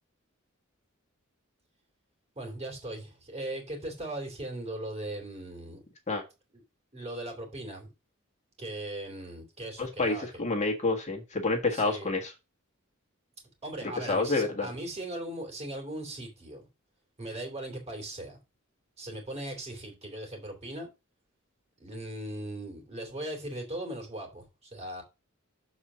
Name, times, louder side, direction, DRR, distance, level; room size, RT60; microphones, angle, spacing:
voice 1, 2.3-5.8 6.5-6.6 6.9-7.9 8.6-10.3 11.7-12.1 13.6-16.7 17.2-18.4 19.0-20.9 21.8-25.0, right 1 dB, 30° right, 2.9 m, -39 dB
voice 2, 9.8-12.3 14.0-14.7, left 3 dB, 35° left, 1.5 m, -28 dB
7.0 x 4.3 x 6.1 m
head